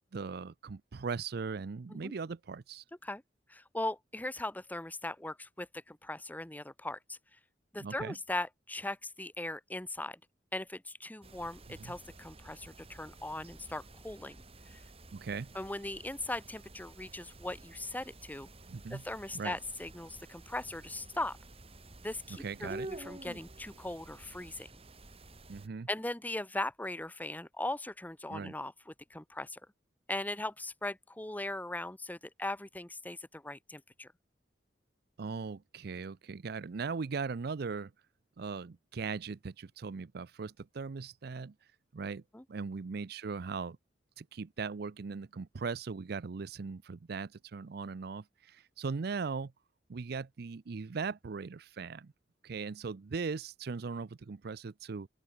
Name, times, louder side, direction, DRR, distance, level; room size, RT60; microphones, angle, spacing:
voice 1, 0.1-2.8 7.8-8.2 11.8-12.0 15.1-15.5 18.7-19.0 19.3-19.6 22.4-22.9 25.5-25.9 28.3-28.5 35.2-37.9 38.4-41.5 41.9-42.2 42.5-43.8 44.2-49.5 49.9-52.1 52.4-55.1, right 5 dB, 60° right, 0.5 m, -39 dB
voice 2, 3.5-7.2 7.7-10.2 10.5-14.4 14.7-14.8 15.5-18.5 18.9-21.4 22.0-24.7 25.9-29.6 30.1-34.1 42.3-42.4, left 2 dB, 10° left, 1.0 m, -39 dB
sound 1, 11.2-25.7, right 1 dB, 35° right, 3.0 m, -51 dB
open air
head